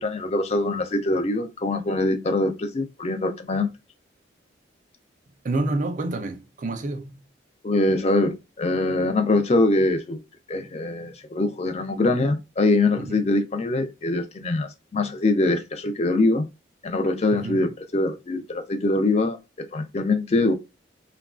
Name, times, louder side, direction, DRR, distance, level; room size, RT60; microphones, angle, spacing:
voice 1, 0.0-3.7 7.6-10.2 10.5-16.5 16.8-20.5, left 2 dB, 30° left, 0.4 m, -23 dB
voice 2, 5.4-7.2 12.9-13.3 17.3-17.7, right 2 dB, 40° right, 0.3 m, -28 dB
2.9 x 2.2 x 2.3 m
head